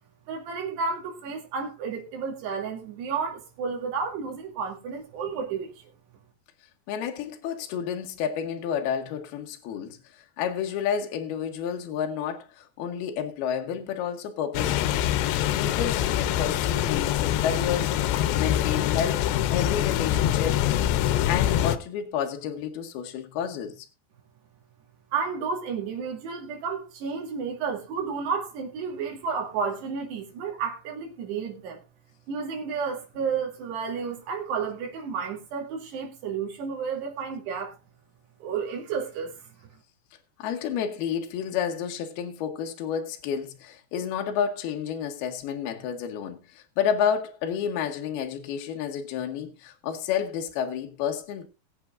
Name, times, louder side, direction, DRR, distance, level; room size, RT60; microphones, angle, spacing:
voice 1, 0.3-5.7 25.1-31.8 32.3-37.8 38.4-39.5, right 5 dB, 80° right, 4.6 m, -31 dB
voice 2, 6.9-15.0 15.6-17.9 18.4-19.2 19.5-20.7 21.2-23.9 40.4-51.5, left 8 dB, 75° left, 2.8 m, -30 dB
sound 1, 14.5-21.8, left 12 dB, 90° left, 3.0 m, -24 dB
21.5 x 8.0 x 2.5 m
omnidirectional pair, 4.8 m